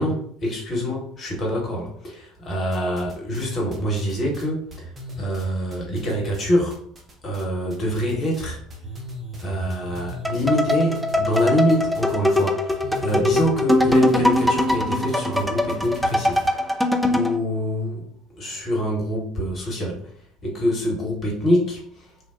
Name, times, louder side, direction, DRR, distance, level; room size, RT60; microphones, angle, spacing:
voice 1, 0.0-6.8 7.2-8.6 9.4-16.8 17.1-18.1 18.3-20.1 20.4-22.1, equal, 35° left, -1 dB, 1.1 m, -25 dB
sound 1, 2.7-3.5 3.7-7.4 7.7-8.4 8.7-16.5, equal, 30° right, 0.7 m, -37 dB
sound 2, 10.2-17.4, left 1 dB, ahead, 0.4 m, -21 dB
3.1 x 2.2 x 2.4 m, 0.63 s
figure-of-eight pair, 60°, 0 cm